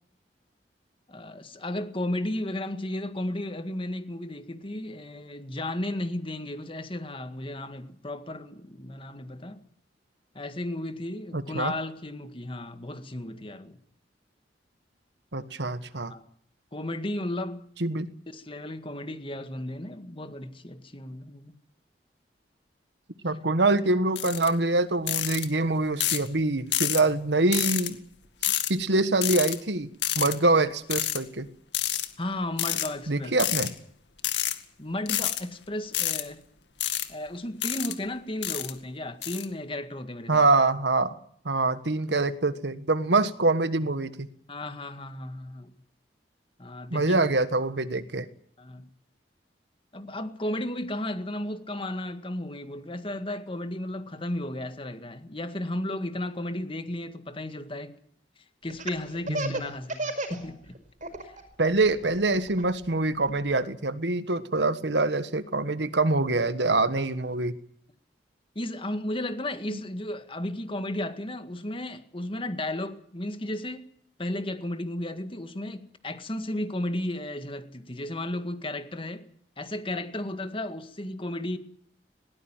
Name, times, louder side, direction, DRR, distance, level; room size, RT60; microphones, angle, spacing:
voice 1, 1.1-9.6 10.3-13.8 16.1-16.2 16.7-17.6 18.3-21.6 32.2-33.4 34.8-36.4 37.1-40.5 44.5-45.8 46.6-47.2 48.6-48.9 49.9-57.9 58.6-60.7 61.2-61.3 68.6-73.8 74.2-79.3 79.6-81.6, left 1 dB, 30° left, 1.9 m, -34 dB
voice 2, 11.3-11.7 15.3-16.1 17.8-18.1 23.2-28.0 28.4-29.9 30.1-31.5 33.1-33.7 40.3-41.2 41.4-44.3 46.9-48.3 59.3-59.6 61.6-67.6 69.7-69.8, right 2 dB, 75° right, 1.5 m, -25 dB
sound 1, 24.2-24.5 25.1-25.5 26.0-26.3 26.7-27.0 27.5-27.9 28.4-28.7 29.2-29.6 30.0-30.3 30.9-31.2 31.7-32.1 32.6-32.9 33.4-33.7 34.2-34.5 35.1-35.4 35.9-36.2 36.8-37.1 37.6-37.9 38.4-38.7 39.2-39.4, left 12 dB, 80° left, 2.1 m, -28 dB
Laughter, 58.7-60.4 60.7-61.4 61.8-63.5, right 2 dB, 45° right, 4.9 m, -33 dB
20.5 x 18.5 x 9.1 m
head